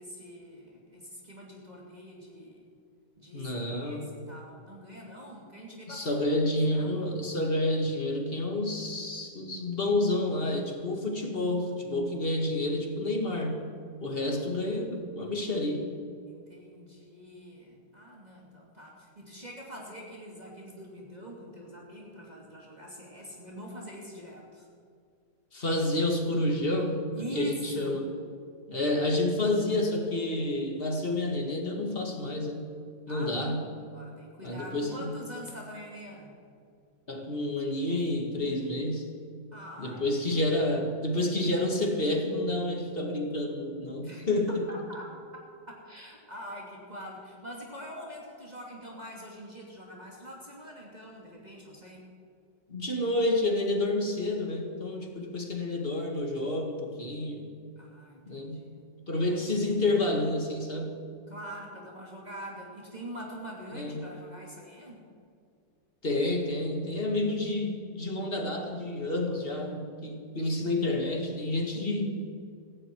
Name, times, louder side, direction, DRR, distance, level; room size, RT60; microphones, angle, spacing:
voice 1, 0.0-2.7 3.2-6.2 6.4-7.1 14.1-14.4 16.3-24.7 27.1-28.1 33.1-36.4 39.5-40.4 44.0-44.3 44.7-45.1 45.7-52.1 57.8-59.4 61.3-65.0, equal, 20° right, -3 dB, 2.6 m, -44 dB
voice 2, 3.3-4.1 5.9-13.6 14.0-15.9 25.5-28.1 28.7-32.7 33.1-33.7 34.4-35.2 37.1-39.2 39.8-44.7 52.7-57.5 58.3-58.7 59.1-61.0 63.7-64.1 66.0-72.1, left 1 dB, 30° left, 3 dB, 1.9 m, -29 dB
17.5 x 15.5 x 4.6 m, 2.3 s
omnidirectional pair, 1.9 m